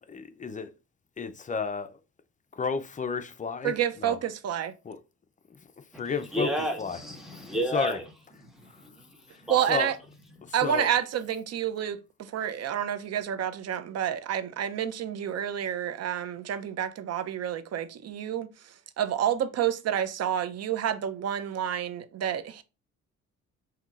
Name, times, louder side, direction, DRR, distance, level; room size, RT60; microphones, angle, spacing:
voice 1, 0.1-0.7 1.2-2.0 2.5-3.7 4.0-4.2 4.8-5.0 5.5-5.6 5.9-6.5 6.8-7.0 7.7-8.0 9.3-9.4 9.7-9.9 10.4-10.9, left 5 dB, 25° left, 0.5 m, -32 dB
voice 2, 3.6-4.7 9.5-10.0 10.5-22.6, right 9 dB, 55° right, 0.6 m, -29 dB
voice 3, 6.3-8.0 8.5-9.7, equal, ahead, 1.4 m, -32 dB
5.3 x 2.8 x 2.4 m
cardioid pair, 90°, 30 cm